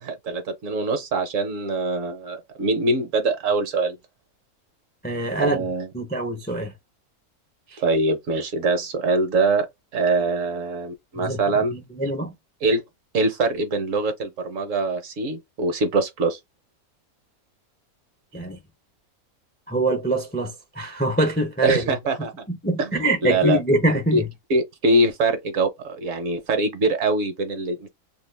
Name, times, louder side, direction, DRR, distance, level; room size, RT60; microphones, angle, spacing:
voice 1, 0.0-4.0 5.4-5.9 7.8-9.7 9.9-11.7 12.6-12.8 13.1-16.4 21.6-22.5 22.8-23.6 24.1-24.2 24.5-27.9, right 2 dB, 65° right, 1.1 m, -23 dB
voice 2, 5.0-5.6 5.9-6.7 7.7-7.8 11.2-12.3 18.3-18.6 19.7-21.8 22.5-24.2, right 1 dB, 15° left, 0.3 m, -24 dB
2.8 x 2.2 x 3.3 m
omnidirectional pair, 1.5 m